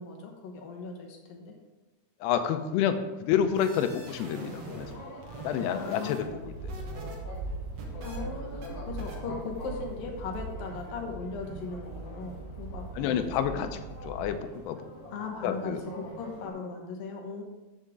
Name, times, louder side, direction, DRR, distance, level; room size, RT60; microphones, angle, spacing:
voice 1, 0.0-1.5 5.8-6.3 8.0-13.8 15.1-17.4, left 4 dB, 70° left, 2 dB, 2.5 m, -38 dB
voice 2, 2.2-4.9 5.4-6.3 13.0-13.7 14.0-14.4 14.7-14.8 15.4-15.8, left 9 dB, 85° left, 9 dB, 2.7 m, -28 dB
sound 1, 3.5-5.0 5.2-7.2 7.5-8.2 8.6-8.7 9.0-9.2, right 3 dB, 60° right, 1.7 m, -45 dB
sound 2, 3.9-16.5, equal, 45° left, 2.4 m, -46 dB
sound 3, 6.2-14.6, right 2 dB, 80° right, 2.5 m, -40 dB
12.5 x 6.5 x 3.6 m, 1.1 s
omnidirectional pair, 4.8 m